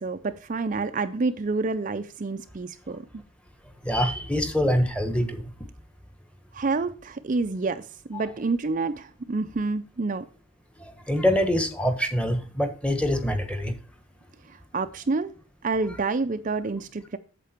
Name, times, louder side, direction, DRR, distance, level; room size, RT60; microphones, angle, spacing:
voice 1, 0.0-3.0 6.5-7.8 8.1-10.2 14.5-15.3 15.6-17.2, right 3 dB, 40° right, 0.5 m, -28 dB
voice 2, 3.8-5.4 8.1-8.2 11.1-13.7, equal, 5° left, 1.4 m, -24 dB
8.4 x 7.6 x 4.5 m
head